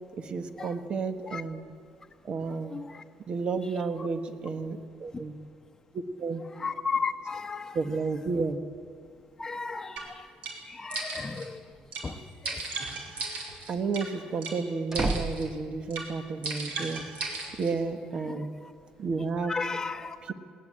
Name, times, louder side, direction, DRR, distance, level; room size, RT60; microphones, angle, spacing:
voice 1, 0.2-1.6 2.2-2.8 3.3-5.3 6.2-6.4 7.7-8.6 13.7-17.1 17.6-18.5 19.0-19.6 20.2-20.3, right 4 dB, 40° right, 1.6 m, -31 dB
voice 2, 2.7-3.0 6.6-7.8 9.4-10.1 10.7-11.6 12.0-12.2 12.4-12.6 18.3-18.7 19.5-20.2, left 4 dB, 20° left, 1.1 m, -34 dB
sound 1, 10.0-10.1 10.4-10.6 10.9-11.5 11.9-12.1 12.4-14.1 14.4-14.6 14.9-15.5 15.9-16.1 16.4-17.7, right 3 dB, 65° right, 5.0 m, -36 dB
sound 2, 11.7-12.3 14.5-16.0, right 2 dB, 20° right, 1.3 m, -33 dB
20.0 x 19.0 x 8.9 m
cardioid pair, 125°, 3 cm